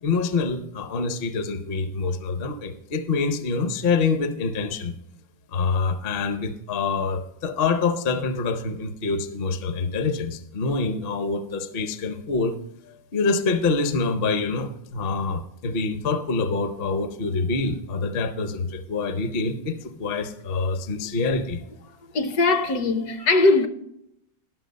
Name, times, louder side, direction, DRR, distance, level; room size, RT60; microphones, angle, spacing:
voice 1, 0.0-4.9 5.5-12.6 12.9-21.6, left 4 dB, 50° left, 0.7 m, -26 dB
voice 2, 22.1-23.7, left 3 dB, 65° left, 1.2 m, -20 dB
11.5 x 6.1 x 5.2 m
omnidirectional pair, 2.0 m